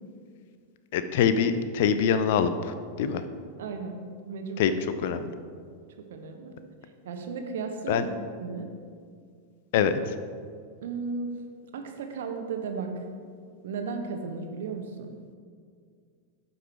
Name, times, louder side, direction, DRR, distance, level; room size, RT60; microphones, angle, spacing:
voice 1, 0.9-2.5 3.0-3.2 4.6-4.7 5.0-5.2 7.9-8.0 9.7-10.1, left 7 dB, 50° left, 11 dB, 0.5 m, -24 dB
voice 2, 3.6-4.0 4.2-4.7 6.1-6.5 7.0-8.1 8.4-8.7 10.8-11.3 11.7-12.9 13.6-15.1, right 5 dB, 60° right, 4 dB, 1.0 m, -34 dB
11.5 x 5.5 x 4.4 m, 2.1 s
figure-of-eight pair, 90°, 0 cm